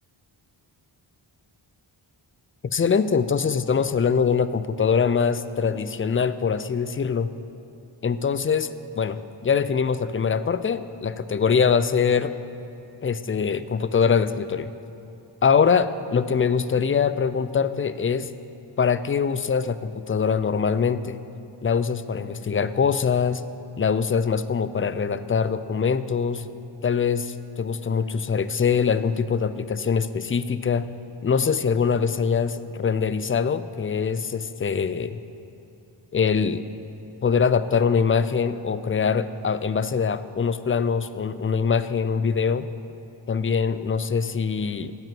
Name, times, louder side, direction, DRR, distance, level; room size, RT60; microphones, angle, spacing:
voice 1, 2.7-7.3 8.0-8.7 9.0-12.3 13.0-14.7 15.4-18.3 18.8-21.2 21.6-23.4 23.8-26.4 26.8-30.9 31.2-35.2 36.1-36.6 37.2-42.7 43.3-45.0, left 6 dB, 25° left, 14 dB, 0.4 m, -23 dB
9.2 x 7.8 x 7.7 m, 2.8 s
cardioid pair, 55°, 49 cm